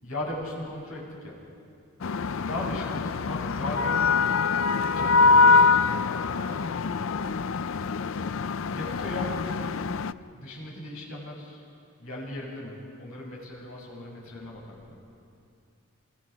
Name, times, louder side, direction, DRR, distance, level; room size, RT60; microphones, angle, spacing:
voice 1, 0.0-1.4 2.4-4.1 4.9-7.2 8.7-9.8 10.1-11.6 12.0-15.0, left 1 dB, 85° left, -3 dB, 7.6 m, -38 dB
sound 1, 2.0-10.1, left 4 dB, 65° left, 0.5 m, -24 dB
28.5 x 26.5 x 5.2 m, 2.5 s
head